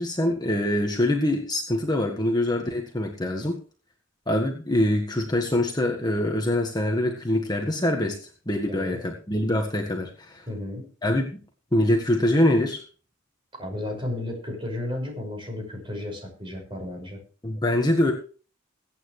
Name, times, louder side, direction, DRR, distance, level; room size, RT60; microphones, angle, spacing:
voice 1, 0.0-3.6 4.3-8.1 8.5-10.4 11.0-11.4 11.7-12.8 17.4-18.1, left 1 dB, 20° left, 2 dB, 1.5 m, -24 dB
voice 2, 10.5-10.9 13.6-17.2, left 1 dB, 25° right, 3 dB, 5.9 m, -33 dB
21.5 x 9.3 x 3.2 m, 0.39 s
head